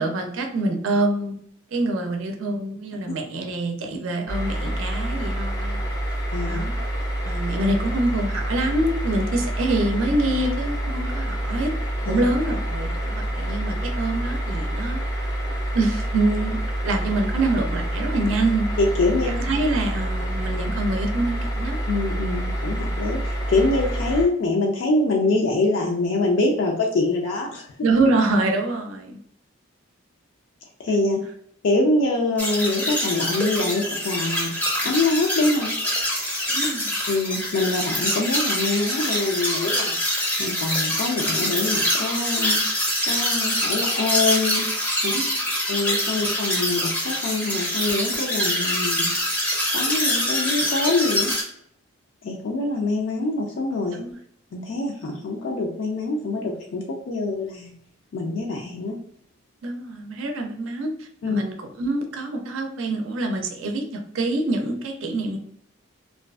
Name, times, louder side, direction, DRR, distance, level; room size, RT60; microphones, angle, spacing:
voice 1, 0.0-1.4 1.7-5.8 6.4-6.7 7.2-11.7 12.1-15.0 15.7-16.6 16.8-18.7 19.2-21.8 27.8-29.2 36.5-36.9 45.1-45.3 46.2-46.3 53.9-54.2 59.6-65.4, right 2 dB, 80° right, 3 dB, 0.5 m, -25 dB
sound 1, 4.3-24.2, right 1 dB, 85° left, 1.0 m, -27 dB
voice 2, 18.8-19.3 21.9-27.8 30.8-31.2 31.6-34.5 34.8-35.7 37.1-40.0 40.4-42.6 43.0-44.6 45.0-45.1 45.7-49.1 49.7-51.3 52.2-54.0 54.5-57.7 58.1-59.0 61.2-61.4, left 2 dB, 65° left, 0 dB, 0.4 m, -24 dB
sound 2, 32.4-51.4, equal, 10° left, 0.5 m, -25 dB
2.4 x 2.3 x 2.2 m, 0.66 s
head